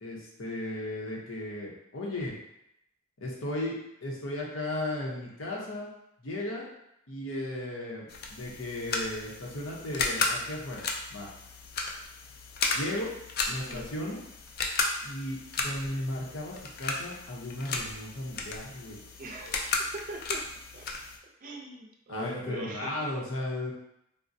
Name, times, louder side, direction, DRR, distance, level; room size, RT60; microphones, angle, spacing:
voice 1, 0.0-2.3 3.2-5.9 6.2-6.6 7.1-8.1 8.3-10.8 11.1-11.3 12.7-13.1 13.5-14.2 15.0-19.0 22.1-23.7, left 1 dB, 75° left, -3 dB, 0.8 m, -35 dB
sound 1, 8.1-21.2, left 3 dB, 50° left, 0.4 m, -34 dB
voice 2, 13.5-13.8 19.2-20.4 20.7-20.9 21.4-22.9, right 2 dB, 40° right, 0 dB, 0.4 m, -41 dB
3.7 x 2.0 x 2.6 m, 0.80 s
head